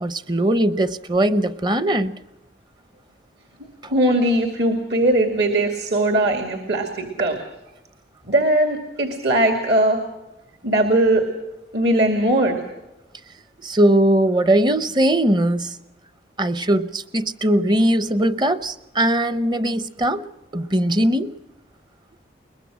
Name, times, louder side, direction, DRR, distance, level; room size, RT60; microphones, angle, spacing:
voice 1, 0.0-2.1 3.8-3.9 13.6-15.8 16.4-21.4, right 1 dB, 25° right, 0.7 m, -20 dB
voice 2, 3.9-7.4 8.3-10.0 10.6-11.2 11.7-12.6, right 1 dB, 65° right, 2.4 m, -19 dB
22.5 x 21.0 x 6.3 m
head